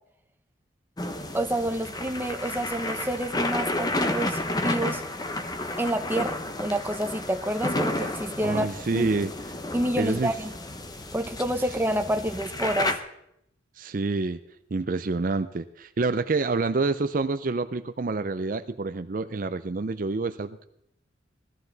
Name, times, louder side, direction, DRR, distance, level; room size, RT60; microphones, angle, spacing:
sound 1, 1.0-13.0, left 2 dB, 20° left, 0.9 m, -31 dB
voice 1, 1.3-5.0 5.8-8.7 8.9-9.1 9.7-10.5 11.1-12.9, right 1 dB, 10° right, 0.8 m, -28 dB
voice 2, 8.4-9.3 10.0-10.3 13.8-14.4 14.7-20.6, right 3 dB, 45° right, 0.5 m, -27 dB
17.0 x 13.5 x 4.0 m
head